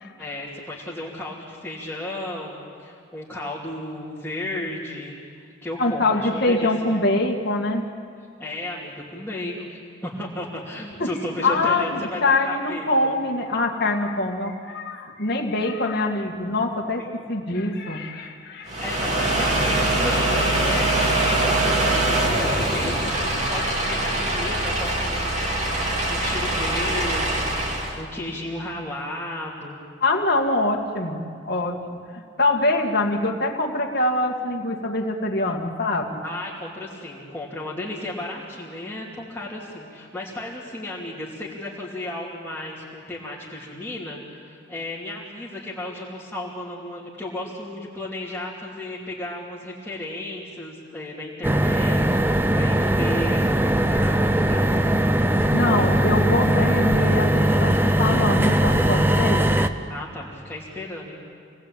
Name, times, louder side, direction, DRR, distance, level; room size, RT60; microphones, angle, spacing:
voice 1, 0.2-6.9 8.4-13.2 17.0-17.1 18.8-25.5 25.8-29.8 36.2-55.0 59.9-61.2, left 1 dB, 10° left, -8 dB, 2.9 m, -34 dB
voice 2, 5.8-7.8 11.0-11.1 11.4-18.8 30.0-32.0 32.4-36.2 55.5-59.6, left 2 dB, 55° left, 0 dB, 2.2 m, -24 dB
sound 1, 18.7-28.0, right 1 dB, 35° right, 3.0 m, -23 dB
sound 2, 51.4-59.7, right 1 dB, 10° right, 0.7 m, -20 dB
28.0 x 19.0 x 8.8 m, 2.3 s
head